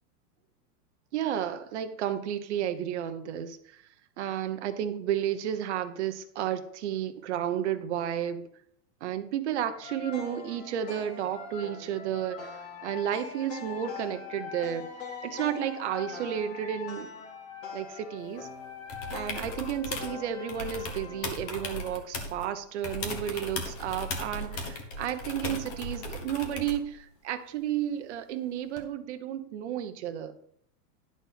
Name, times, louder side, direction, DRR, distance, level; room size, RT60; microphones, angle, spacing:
voice 1, 1.1-3.6 4.2-8.5 9.0-14.9 15.2-17.1 17.7-18.5 19.1-30.3, right 10 dB, 45° right, 9 dB, 0.8 m, -32 dB
sound 1, 9.7-22.0, left 5 dB, 55° left, 2.2 m, -42 dB
sound 2, 18.9-20.1 20.5-22.5 22.8-26.9 28.8-28.9, left 2 dB, 25° left, 1.0 m, -37 dB
10.5 x 4.2 x 5.7 m, 0.70 s
supercardioid pair, 175°, 47 cm